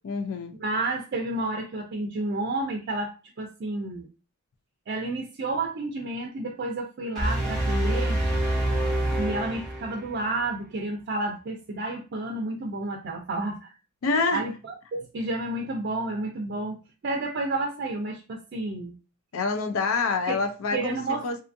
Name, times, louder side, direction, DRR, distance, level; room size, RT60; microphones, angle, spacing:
voice 1, 0.0-0.6 14.0-14.4 19.3-21.0 21.2-21.4, left 4 dB, 75° left, 0.4 m, -26 dB
voice 2, 0.6-3.1 3.4-4.1 4.9-8.2 9.2-13.7 14.3-16.8 17.0-18.9 20.3-20.4 20.7-21.3, right 2 dB, 50° right, 0.4 m, -30 dB
sound 1, 7.2-10.4, right 1 dB, 5° left, 1.0 m, -26 dB
2.6 x 2.4 x 2.5 m
head